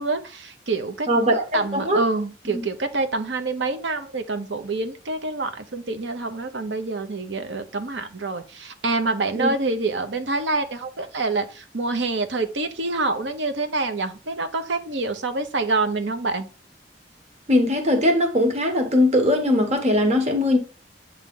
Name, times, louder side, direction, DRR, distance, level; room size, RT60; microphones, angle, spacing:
voice 1, 0.0-1.2 1.5-16.5, right 3 dB, 80° right, 0.9 m, -26 dB
voice 2, 1.1-2.0 9.3-9.5 17.5-20.6, left 1 dB, 40° right, 1.2 m, -20 dB
8.3 x 3.2 x 3.8 m
head